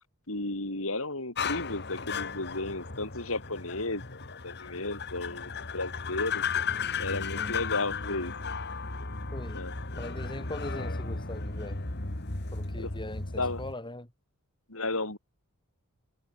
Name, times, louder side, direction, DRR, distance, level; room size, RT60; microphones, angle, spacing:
voice 1, 0.3-4.0 4.4-6.4 7.0-8.3 9.5-9.7 12.8-12.9 13.4-13.6 14.7-15.2, left 2 dB, 65° left, 5.7 m, -33 dB
sound 1, 1.4-13.7, left 5 dB, 50° left, 2.4 m, -35 dB
voice 2, 9.3-9.6 10.0-11.8 12.5-14.1, left 1 dB, 20° left, 7.5 m, -41 dB
head